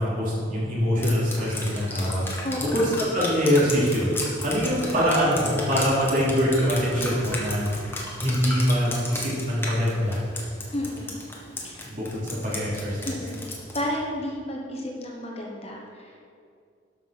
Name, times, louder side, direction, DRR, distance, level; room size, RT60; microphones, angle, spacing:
voice 1, 0.0-4.1 4.4-10.2 11.8-13.1, equal, 45° right, -6 dB, 3.0 m, -24 dB
Drip, 1.0-13.9, left 2 dB, 10° left, 1.4 m, -34 dB
voice 2, 2.4-2.8 10.7-11.1 11.5-11.9 13.0-13.4 13.7-16.3, left 1 dB, 30° left, -1 dB, 1.1 m, -32 dB
12.5 x 5.6 x 5.9 m, 2.3 s
head